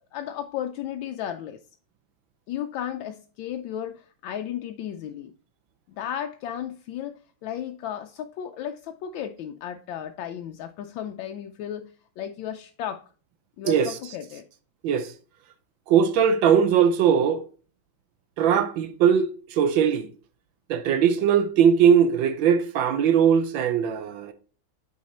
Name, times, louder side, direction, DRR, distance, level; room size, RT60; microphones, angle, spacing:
voice 1, 0.1-1.6 2.5-5.3 5.9-13.0 13.6-14.4, left 10 dB, 80° left, 1.3 m, -34 dB
voice 2, 13.6-14.0 14.8-15.1 15.9-17.4 18.4-20.1 20.7-24.3, right 8 dB, 80° right, 1.4 m, -20 dB
8.4 x 4.2 x 4.2 m
omnidirectional pair, 2.1 m